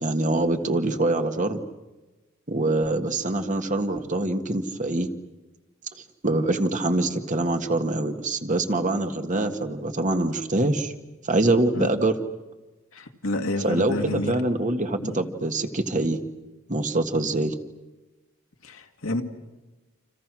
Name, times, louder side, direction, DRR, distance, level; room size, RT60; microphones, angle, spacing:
voice 1, 0.0-1.6 2.5-5.1 6.2-10.9 11.2-12.1 13.6-16.2 16.7-17.6, right 2 dB, 35° right, 6 dB, 1.7 m, -24 dB
voice 2, 12.9-14.4 15.0-15.2 18.6-19.2, left 2 dB, 75° left, 4 dB, 2.3 m, -29 dB
30.0 x 27.5 x 6.3 m, 1.2 s
head